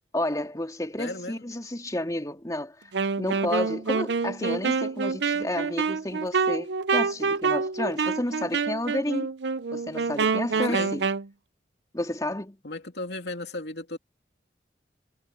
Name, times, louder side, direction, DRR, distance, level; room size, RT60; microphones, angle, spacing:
voice 1, 0.1-2.7 3.2-9.3 9.7-11.0 11.9-12.6, left 1 dB, 20° left, 3.2 m, -31 dB
voice 2, 1.0-1.4 10.5-10.9 12.6-14.0, left 2 dB, 65° left, 2.9 m, -35 dB
Wind instrument woodwind instrument, 2.9-11.3, right 5 dB, 70° right, 0.6 m, -27 dB
head